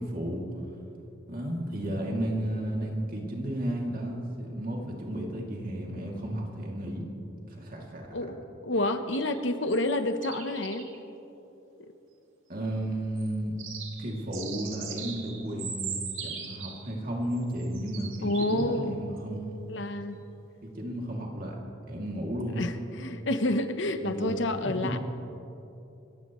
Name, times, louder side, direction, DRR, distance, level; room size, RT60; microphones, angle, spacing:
voice 1, 0.1-0.5 1.3-7.1 7.5-8.1 12.5-13.5 14.0-19.6 20.6-21.6 21.9-22.7 24.0-24.3 24.8-24.9, right 1 dB, 45° right, -1 dB, 2.6 m, -33 dB
voice 2, 8.6-10.9 11.8-11.9 18.2-19.0 19.7-20.2 22.5-25.0, left 1 dB, 65° left, 8 dB, 0.9 m, -29 dB
sound 1, 9.1-10.0 10.2-11.0 13.2-13.3 13.6-17.0 17.3-18.8 19.2-19.3, right 6 dB, 85° right, 2.3 m, -40 dB
28.0 x 15.0 x 3.1 m, 2.9 s
head